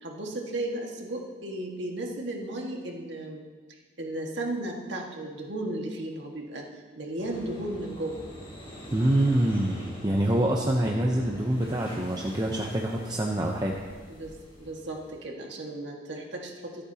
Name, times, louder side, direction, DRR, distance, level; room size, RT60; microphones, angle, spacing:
voice 1, 0.0-3.4 4.0-6.7 7.0-8.3 14.1-16.8, right 1 dB, 65° right, 0 dB, 1.8 m, -35 dB
sound 1, 7.2-15.2, equal, 30° left, 3.7 m, -45 dB
voice 2, 8.9-13.8, right 1 dB, 20° right, -1 dB, 0.8 m, -25 dB
25.0 x 8.8 x 2.9 m, 1.5 s
head